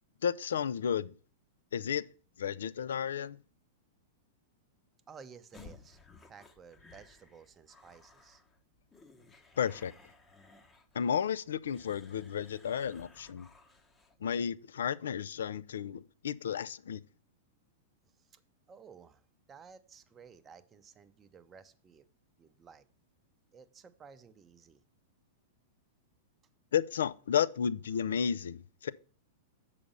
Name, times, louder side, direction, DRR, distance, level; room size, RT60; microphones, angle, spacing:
voice 1, 0.2-1.1 1.7-2.1 2.4-3.4 9.6-9.9 10.9-13.5 14.2-17.0 26.7-28.9, left 8 dB, 75° left, 0.3 m, -32 dB
voice 2, 5.1-6.0 6.3-8.4 18.1-18.4 18.7-19.2 19.5-22.1 22.4-22.9 23.5-24.8, right 6 dB, 25° right, 0.6 m, -55 dB
sound 1, 5.5-14.2, left 4 dB, 20° left, 0.9 m, -58 dB
6.9 x 4.9 x 5.3 m
hypercardioid pair, 105°, 0 cm